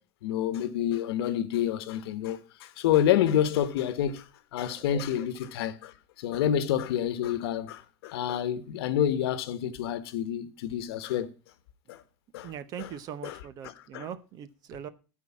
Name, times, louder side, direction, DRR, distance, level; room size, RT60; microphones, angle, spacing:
voice 1, 0.2-11.3 11.9-12.0 12.3-12.5 12.8-12.9 13.2-13.4 13.6-14.0, left 10 dB, 75° left, 1.1 m, -28 dB
voice 2, 4.8-5.3 12.4-14.9, right 9 dB, 30° right, 0.6 m, -41 dB
13.0 x 4.6 x 7.1 m
supercardioid pair, 170°, 13 cm